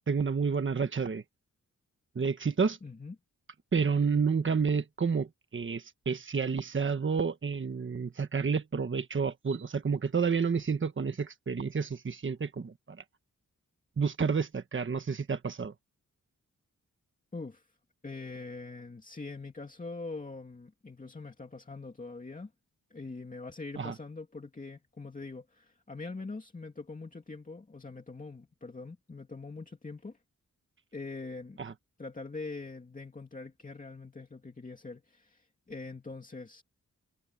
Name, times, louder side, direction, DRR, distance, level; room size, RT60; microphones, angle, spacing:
voice 1, 0.1-1.2 2.1-2.8 3.7-13.0 14.0-15.7 23.8-23.9 31.6-31.7, right 5 dB, 40° right, 1.3 m, -30 dB
voice 2, 2.8-3.2 17.3-17.8 18.0-22.5 22.9-30.2 30.9-31.6 32.0-36.6, left 3 dB, 25° left, 2.3 m, -43 dB
wide cardioid pair, 180°, 32 cm